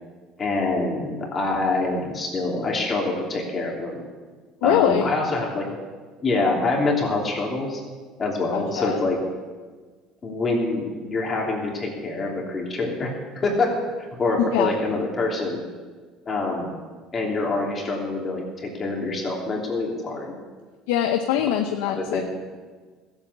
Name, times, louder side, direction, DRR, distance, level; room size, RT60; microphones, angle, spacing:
voice 1, 0.4-4.0 4.6-5.6 6.2-7.8 8.2-9.2 10.2-13.1 13.3-13.7 14.0-15.6 16.2-16.7 17.1-20.3 21.9-22.2, left 2 dB, 30° left, -1 dB, 3.1 m, -25 dB
voice 2, 4.6-5.1 8.5-9.0 14.5-14.7 20.9-22.2, left 10 dB, 85° left, 5 dB, 0.8 m, -23 dB
14.0 x 8.2 x 8.1 m, 1.5 s
supercardioid pair, 110°, 0 cm